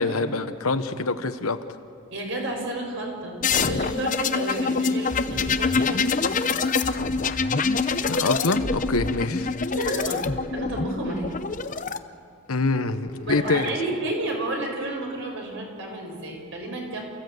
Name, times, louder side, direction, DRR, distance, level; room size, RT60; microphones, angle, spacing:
voice 1, 0.0-1.6 8.1-9.5 12.5-13.7, left 3 dB, 85° left, 10 dB, 1.1 m, -25 dB
voice 2, 2.1-6.5 9.7-10.2 10.5-11.4 13.2-17.0, right 2 dB, 60° right, 1 dB, 5.9 m, -31 dB
sound 1, 3.4-12.0 13.1-13.7, left 4 dB, 35° left, 0.7 m, -25 dB
29.0 x 16.0 x 8.0 m, 2.4 s
head